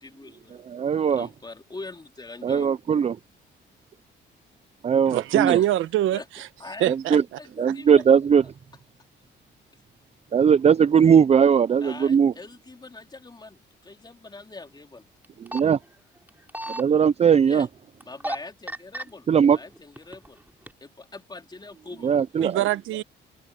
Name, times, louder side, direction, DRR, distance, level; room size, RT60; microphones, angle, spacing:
voice 1, 0.0-0.7 1.1-2.7 5.5-5.7 6.1-6.2 6.6-6.9 7.4-8.0 11.8-15.0 17.5-17.7 18.1-20.4 20.8-22.1, left 3 dB, 20° left, 3.1 m, -42 dB
voice 2, 0.7-1.3 2.4-3.2 4.8-5.6 6.9-7.2 7.6-8.4 10.3-12.3 15.4-15.8 16.7-17.7 19.3-19.6 22.0-22.6, right 7 dB, 35° right, 0.5 m, -19 dB
voice 3, 5.1-6.5 6.8-7.2 22.4-23.0, right 13 dB, 85° right, 1.1 m, -24 dB
sound 1, 15.2-15.6 16.3-16.8 18.0-18.4 18.7-19.0 19.8-20.3 20.7-20.8, right 1 dB, 10° right, 4.3 m, -32 dB
cardioid pair, 90°, 20 cm